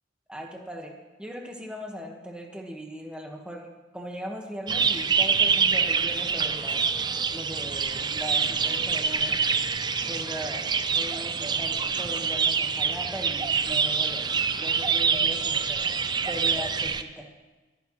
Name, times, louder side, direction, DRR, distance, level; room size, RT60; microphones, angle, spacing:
voice 1, 0.3-0.9 1.2-3.7 3.9-6.8 7.3-9.4 10.1-16.0 16.3-17.3, equal, 5° right, 1 dB, 1.4 m, -39 dB
sound 1, 4.7-17.0, right 5 dB, 25° right, 0.4 m, -26 dB
21.5 x 9.6 x 3.1 m, 1.2 s
head